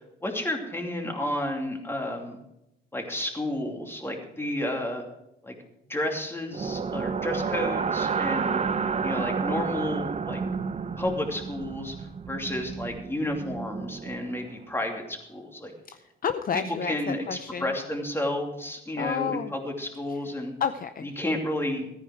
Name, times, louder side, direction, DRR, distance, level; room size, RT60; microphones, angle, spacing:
voice 1, 0.2-2.4 2.9-5.0 5.4-5.5 5.9-8.6 9.0-10.4 11.0-12.0 12.3-15.7 16.5-20.5 21.0-21.9, left 1 dB, 10° left, 2 dB, 2.8 m, -31 dB
sound 1, 6.5-14.6, right 5 dB, 35° right, 0.7 m, -30 dB
voice 2, 15.9-17.7 19.0-19.5 20.6-21.1, left 7 dB, 45° left, 9 dB, 0.6 m, -30 dB
14.0 x 9.9 x 4.8 m, 0.85 s
cardioid pair, 90°, 20 cm